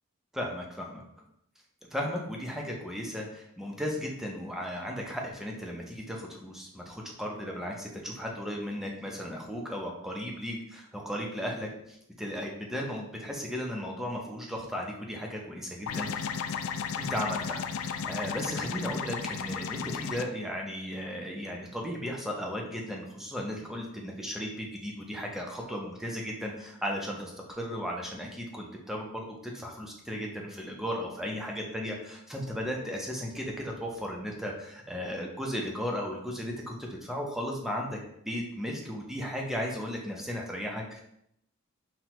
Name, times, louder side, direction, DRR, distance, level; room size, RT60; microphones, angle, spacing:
voice 1, 0.3-1.0 1.9-16.3 16.9-36.7 37.0-38.0 38.3-41.0, equal, ahead, -1 dB, 0.6 m, -35 dB
sound 1, 15.9-20.2, left 6 dB, 70° left, 0.3 m, -34 dB
5.9 x 2.2 x 2.9 m, 0.74 s
head